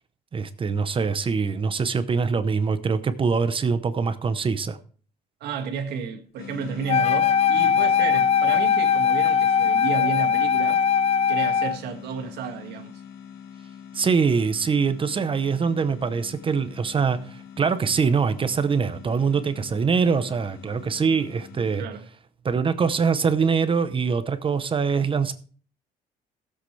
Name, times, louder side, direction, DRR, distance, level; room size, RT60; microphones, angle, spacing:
voice 1, 0.3-4.8 13.9-21.8 22.4-25.3, right 5 dB, 30° right, 0.8 m, -23 dB
voice 2, 5.4-10.8 11.3-12.9 21.8-22.1, right 6 dB, 75° right, 2.0 m, -32 dB
sound 1, 6.4-21.9, left 8 dB, 70° left, 1.4 m, -43 dB
Wind instrument woodwind instrument, 6.9-11.8, left 7 dB, 35° left, 0.4 m, -20 dB
16.5 x 7.7 x 3.3 m
cardioid pair, 110°, 17 cm